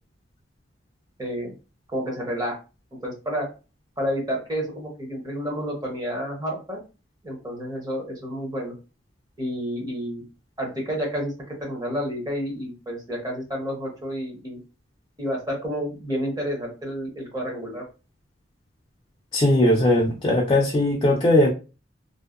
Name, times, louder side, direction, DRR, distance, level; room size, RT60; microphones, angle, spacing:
voice 1, 1.2-1.5 1.9-2.6 3.0-3.5 4.0-6.8 7.2-8.8 9.4-10.2 10.6-14.6 15.2-17.8, equal, 20° right, -1 dB, 0.8 m, -30 dB
voice 2, 19.3-21.5, left 1 dB, 25° left, -1 dB, 0.4 m, -19 dB
2.6 x 2.1 x 2.4 m, 0.31 s
head